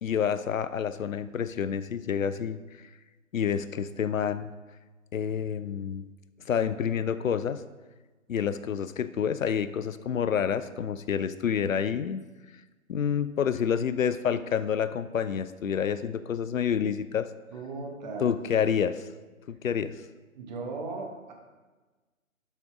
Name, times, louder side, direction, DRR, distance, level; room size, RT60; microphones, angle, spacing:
voice 1, 0.0-2.6 3.3-4.5 5.1-6.0 6.5-7.6 8.3-12.2 12.9-17.3 18.2-19.1 19.5-20.0, left 8 dB, 70° left, 13 dB, 0.5 m, -28 dB
voice 2, 17.5-18.3 20.4-21.3, right 3 dB, 30° right, 1 dB, 1.4 m, -37 dB
11.5 x 5.5 x 3.6 m, 1.3 s
figure-of-eight pair, 140°, 41 cm